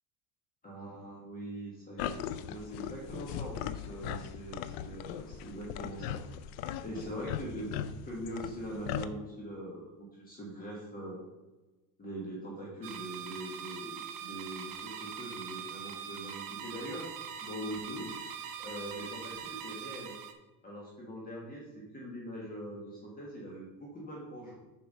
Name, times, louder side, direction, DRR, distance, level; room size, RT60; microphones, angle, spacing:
voice 1, 0.6-6.4 6.8-11.2 12.0-17.0 17.4-18.1 18.6-20.1 20.6-24.6, equal, 20° left, -3 dB, 1.5 m, -42 dB
sound 1, 2.0-9.1, left 10 dB, 65° left, 0.5 m, -39 dB
sound 2, 12.8-20.3, right 8 dB, 50° right, 1.0 m, -42 dB
7.2 x 4.6 x 5.5 m, 1.1 s
cardioid pair, 155°, 41 cm